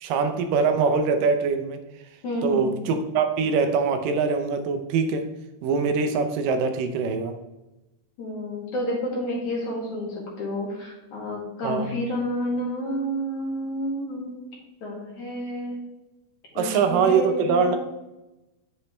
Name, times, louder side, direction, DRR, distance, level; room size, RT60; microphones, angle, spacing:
voice 1, 0.0-1.8 2.4-5.3 5.6-7.4 11.6-11.9 16.6-17.8, right 5 dB, 80° right, 7 dB, 2.4 m, -23 dB
voice 2, 2.2-2.7 8.2-14.5 14.8-15.8 16.6-17.8, equal, 60° left, -3 dB, 3.5 m, -30 dB
9.7 x 7.5 x 3.2 m, 0.99 s
omnidirectional pair, 3.9 m